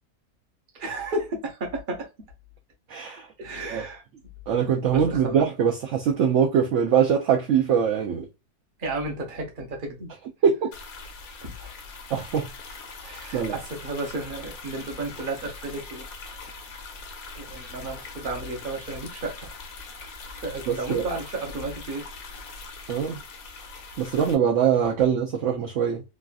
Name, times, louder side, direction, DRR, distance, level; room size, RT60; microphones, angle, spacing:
voice 1, 0.7-2.1 3.4-4.0 4.6-5.5 8.8-10.1 11.4-11.7 13.0-16.1 17.4-19.5 20.4-22.1, right 2 dB, 40° right, 0.9 m, -33 dB
voice 2, 2.9-3.3 3.7-3.8 4.5-8.2 10.4-10.6 12.1-12.5 13.3-13.5 20.7-21.0 22.9-23.2 24.0-26.0, right 7 dB, 70° right, 0.8 m, -22 dB
sound 1, 10.7-24.3, left 4 dB, 75° left, 1.2 m, -42 dB
3.1 x 2.4 x 2.3 m
omnidirectional pair, 1.6 m